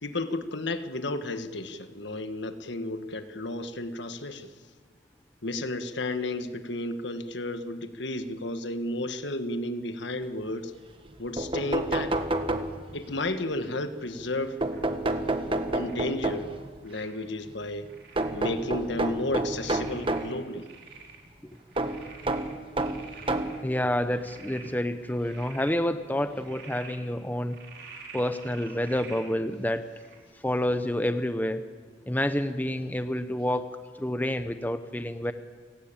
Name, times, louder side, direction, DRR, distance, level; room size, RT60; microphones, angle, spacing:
voice 1, 0.0-4.5 5.4-10.7 11.2-12.1 12.9-14.6 15.7-16.5 16.8-17.9 18.3-20.7, left 2 dB, 65° left, 9 dB, 1.5 m, -32 dB
sound 1, 11.0-11.1 11.4-13.1 14.6-16.7 18.2-20.4 21.8-23.6 24.5-24.6 25.9-26.0 26.3-26.4, right 2 dB, 25° right, 1.3 m, -29 dB
Frog, 13.3-13.6 14.5-14.9 15.6-16.1 16.9-17.3 17.9-18.4 18.8-18.9 19.6-21.2 21.5-23.6 24.1-24.7 25.1-25.8 26.3-27.0 27.5-29.3 29.9-30.2, right 5 dB, 60° right, 5.2 m, -48 dB
voice 2, 23.6-27.6 28.1-29.9 30.4-31.6 32.1-33.7 34.0-35.3, left 1 dB, 10° left, 9 dB, 0.8 m, -28 dB
30.0 x 17.0 x 8.9 m, 1.5 s
head